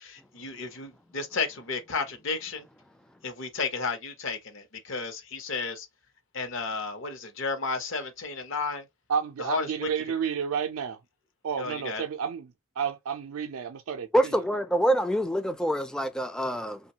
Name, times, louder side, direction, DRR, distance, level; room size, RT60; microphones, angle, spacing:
voice 1, 0.0-2.7 3.2-5.9 6.3-8.9 9.4-9.9 11.6-12.0, left 4 dB, 65° left, 0.8 m, -33 dB
voice 2, 9.1-11.0 11.4-14.4, right 7 dB, 85° right, 0.4 m, -31 dB
voice 3, 14.1-16.8, right 1 dB, 5° left, 0.3 m, -25 dB
3.0 x 2.2 x 2.7 m
head